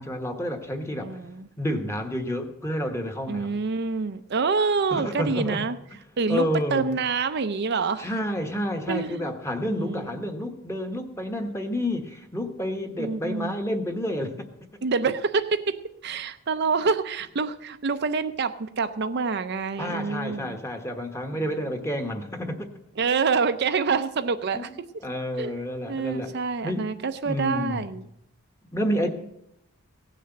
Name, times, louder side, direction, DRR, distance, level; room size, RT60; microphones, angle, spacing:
voice 1, 0.0-1.1 1.6-3.6 4.9-5.6 6.3-6.9 8.0-14.3 19.8-22.7 24.5-24.7 25.0-26.3 26.6-26.9 27.2-27.9 28.7-29.1, equal, 10° left, 4 dB, 1.2 m, -29 dB
voice 2, 1.0-1.5 3.3-5.8 6.2-8.1 8.9-9.3 9.7-10.2 13.0-13.6 14.8-15.8 16.0-20.6 23.0-24.7 25.4-25.5 25.9-28.1 29.0-29.1, right 5 dB, 50° right, 9 dB, 0.5 m, -27 dB
16.5 x 6.5 x 7.9 m, 0.79 s
head